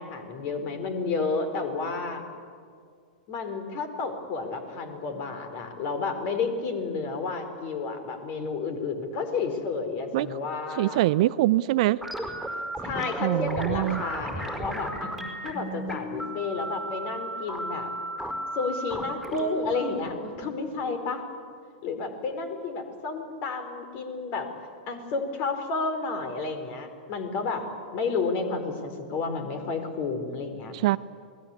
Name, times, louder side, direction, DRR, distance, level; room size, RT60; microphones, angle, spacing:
voice 1, 0.0-2.2 3.3-11.0 12.8-15.1 15.4-17.9 18.5-21.2 21.8-24.5 24.9-30.7, left 4 dB, 40° left, 8 dB, 4.3 m, -31 dB
voice 2, 10.8-12.0 13.2-14.0 30.7-31.0, right 16 dB, 50° right, 17 dB, 0.6 m, -23 dB
sound 1, 12.0-20.9, right 1 dB, 5° left, 5.0 m, -35 dB
28.5 x 20.0 x 8.5 m, 2.2 s
figure-of-eight pair, 100°, 4 cm